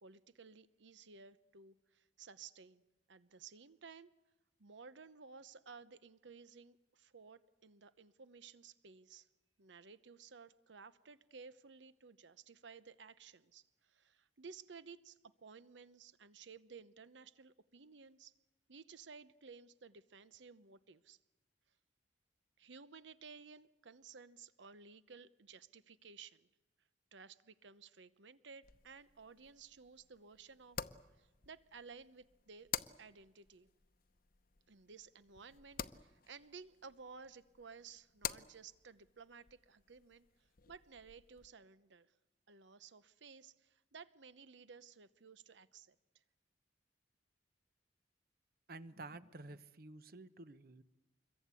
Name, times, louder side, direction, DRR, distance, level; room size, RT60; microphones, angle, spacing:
voice 1, 0.0-2.8 3.1-4.1 4.6-9.3 9.6-18.3 18.7-21.2 22.6-26.5 27.1-30.8 31.2-32.7 33.0-33.7 34.7-42.1 42.5-46.2, right 5 dB, 80° right, 14 dB, 0.9 m, -56 dB
sound 1, 28.6-41.5, left 8 dB, 50° left, 0.8 m, -50 dB
voice 2, 48.7-50.8, right 2 dB, 55° right, 13 dB, 0.9 m, -51 dB
26.0 x 22.5 x 8.3 m, 1.1 s
head